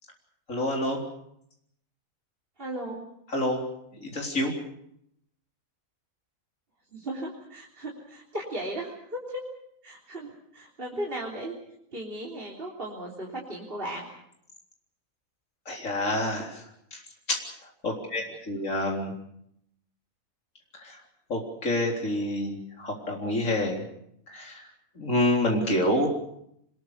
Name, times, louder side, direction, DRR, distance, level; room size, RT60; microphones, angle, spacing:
voice 1, 0.5-1.0 3.3-3.6 4.0-4.5 15.7-16.6 16.9-17.0 17.3-17.4 17.8-19.1 20.7-21.0 21.3-23.8 24.3-24.7 25.0-26.1, left 1 dB, 70° left, 0 dB, 4.3 m, -27 dB
voice 2, 2.6-3.0 6.9-9.4 9.8-11.6 11.9-14.1, right 1 dB, 40° right, -3 dB, 3.8 m, -36 dB
26.5 x 21.0 x 6.6 m, 0.74 s
omnidirectional pair, 1.4 m